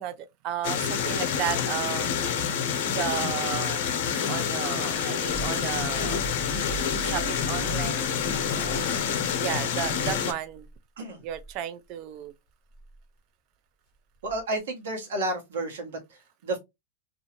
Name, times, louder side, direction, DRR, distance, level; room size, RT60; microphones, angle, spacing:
voice 1, 0.0-2.1 2.8-3.8 4.2-6.2 7.0-8.8 9.4-10.7 11.2-12.3, right 11 dB, 40° right, 0.4 m, -34 dB
sound 1, 0.6-10.3, left 7 dB, 60° left, 0.7 m, -27 dB
sound 2, 5.2-10.8 11.2-11.5 12.7-13.0 14.2-14.6, right 5 dB, 20° right, 1.2 m, -41 dB
voice 2, 8.7-9.0 11.0-11.2 14.2-16.6, right 2 dB, 90° right, 1.2 m, -32 dB
2.6 x 2.3 x 2.9 m
supercardioid pair, 155°, 0 cm